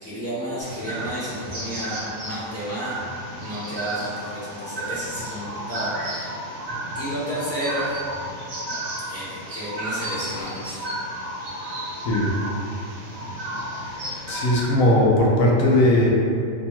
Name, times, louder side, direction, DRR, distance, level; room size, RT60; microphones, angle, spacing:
voice 1, 0.0-2.9 3.4-6.4 6.9-7.9 9.1-10.8, equal, 15° left, -12 dB, 0.6 m, -31 dB
sound 1, 0.6-14.6, right 1 dB, 80° right, 1.0 m, -33 dB
voice 2, 14.3-16.1, left 1 dB, 80° left, -2 dB, 1.0 m, -18 dB
2.9 x 2.2 x 2.7 m, 2.5 s
omnidirectional pair, 1.4 m